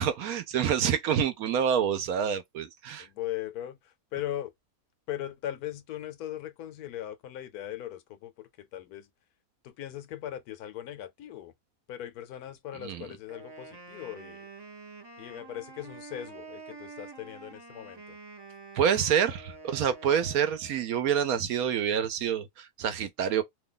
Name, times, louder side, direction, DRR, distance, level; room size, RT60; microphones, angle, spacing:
voice 1, 0.0-3.1 12.8-13.1 18.7-23.4, right 8 dB, 75° right, 1.1 m, -27 dB
voice 2, 3.0-4.5 5.1-9.1 9.6-11.5 11.9-14.5 15.2-18.2, left 12 dB, 85° left, 1.2 m, -39 dB
Wind instrument woodwind instrument, 13.3-20.9, right 4 dB, 40° right, 0.3 m, -47 dB
2.9 x 2.3 x 3.7 m
omnidirectional pair, 1.6 m